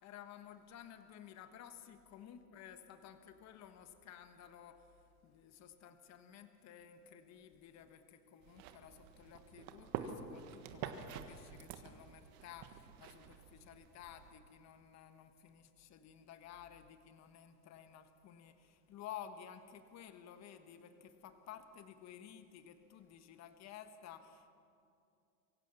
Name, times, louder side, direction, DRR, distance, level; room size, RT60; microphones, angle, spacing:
voice 1, 0.0-24.5, left 9 dB, 35° left, 9 dB, 1.5 m, -54 dB
sound 1, 8.4-14.4, right 8 dB, 45° right, 1.6 m, -48 dB
24.0 x 16.0 x 7.1 m, 2.6 s
hypercardioid pair, 115°, 47 cm